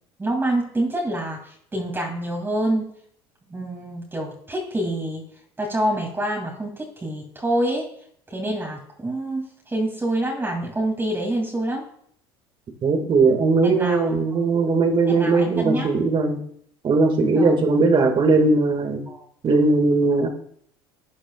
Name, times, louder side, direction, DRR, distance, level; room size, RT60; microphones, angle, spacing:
voice 1, 0.2-2.8 3.5-5.2 5.6-7.9 8.3-11.9 13.6-14.2 15.1-15.9 17.3-17.5 19.1-19.2, right 1 dB, 15° right, -1 dB, 2.8 m, -26 dB
voice 2, 12.8-16.4 16.8-19.0 19.4-20.3, right 3 dB, 40° right, 5 dB, 2.1 m, -19 dB
14.0 x 9.8 x 2.5 m, 0.66 s
hypercardioid pair, 75°, 13 cm